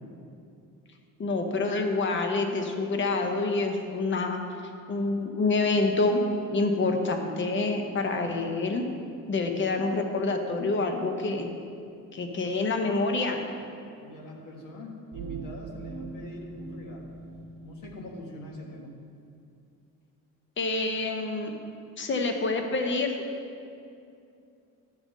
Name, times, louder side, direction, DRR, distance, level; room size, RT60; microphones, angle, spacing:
voice 1, 1.2-4.4 4.9-6.2 6.5-8.8 9.3-11.5 12.1-13.4 20.6-21.5 22.0-23.2, left 3 dB, 35° left, 4 dB, 0.9 m, -27 dB
voice 2, 14.0-17.1 17.6-19.0, left 1 dB, 70° left, 0 dB, 1.5 m, -44 dB
sound 1, 15.1-18.0, right 3 dB, 50° right, 1.6 m, -40 dB
10.5 x 3.6 x 7.4 m, 2.5 s
cardioid pair, 125°, 33 cm